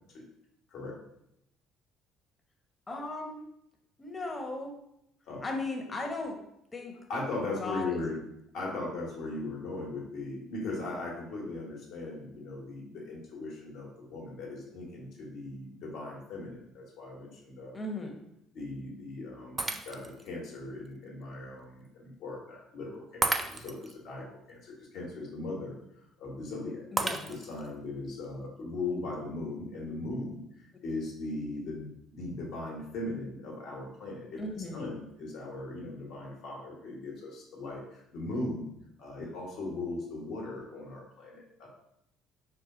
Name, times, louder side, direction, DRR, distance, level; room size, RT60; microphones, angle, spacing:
voice 1, 2.9-3.4 4.0-4.7 5.4-6.4 6.7-7.0 7.6-8.2 17.7-18.2 26.9-27.4 34.4-34.9, left 2 dB, 30° left, 2 dB, 0.9 m, -37 dB
voice 2, 7.1-8.2 8.5-17.8 18.5-25.8 26.2-26.8 27.3-30.4 30.8-34.4 34.7-38.7 39.0-41.7, left 2 dB, 70° left, -2 dB, 1.3 m, -38 dB
Shatter, 19.6-20.3 20.9-21.0 23.2-23.9 27.0-27.7, right 2 dB, 20° right, 0.4 m, -32 dB
4.8 x 2.2 x 3.8 m, 0.78 s
supercardioid pair, 70°, 0 cm